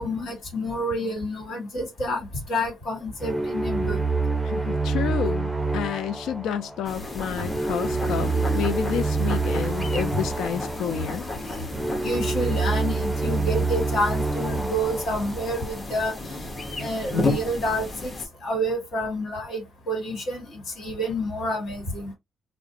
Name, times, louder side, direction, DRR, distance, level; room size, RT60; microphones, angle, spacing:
voice 1, 0.0-4.0 8.0-8.7 10.8-11.1 11.4-11.7 12.0-16.4 16.8-18.1 18.4-22.1, equal, 65° left, 1.4 m, -29 dB
sound 1, 3.2-16.3, right 3 dB, 5° right, 0.5 m, -27 dB
voice 2, 4.4-11.3, left 9 dB, 80° left, 0.3 m, -30 dB
sound 2, 6.8-18.3, left 2 dB, 30° left, 0.9 m, -33 dB
2.4 x 2.0 x 2.7 m
cardioid pair, 90°, 0 cm